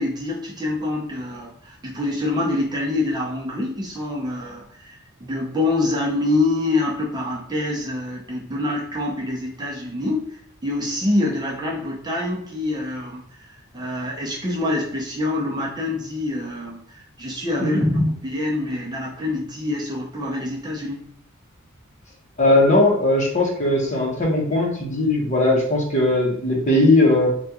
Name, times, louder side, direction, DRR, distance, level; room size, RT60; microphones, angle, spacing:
voice 1, 0.0-10.2 10.6-13.5 13.7-21.0, left 2 dB, 20° right, -3 dB, 0.6 m, -25 dB
voice 2, 22.4-27.3, left 2 dB, 35° left, -1 dB, 0.8 m, -18 dB
3.5 x 2.3 x 2.8 m, 0.66 s
head